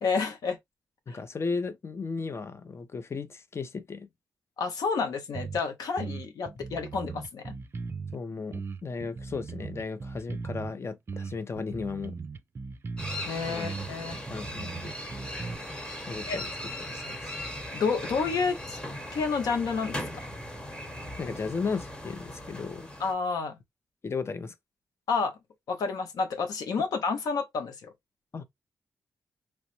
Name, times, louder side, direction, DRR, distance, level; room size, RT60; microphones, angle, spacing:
voice 1, 0.0-0.6 1.1-1.2 4.6-7.5 13.2-14.2 16.2-16.4 17.7-18.8 19.1-20.0 23.0-23.6 25.1-25.4 25.7-27.9, left 5 dB, 85° left, 0.7 m, -30 dB
voice 2, 1.1-4.1 8.1-12.2 13.5-13.7 14.3-14.9 16.1-16.5 16.8-17.3 21.2-22.9 24.0-24.5 28.3-28.4, left 4 dB, 45° left, 0.5 m, -35 dB
sound 1, 5.3-5.6 6.0-8.2 8.5-10.7 11.1-13.3 13.6-15.6, right 4 dB, 40° right, 0.3 m, -38 dB
sound 2, 13.0-23.1, left 1 dB, 15° left, 1.0 m, -38 dB
3.0 x 2.0 x 2.9 m
cardioid pair, 60°, 6 cm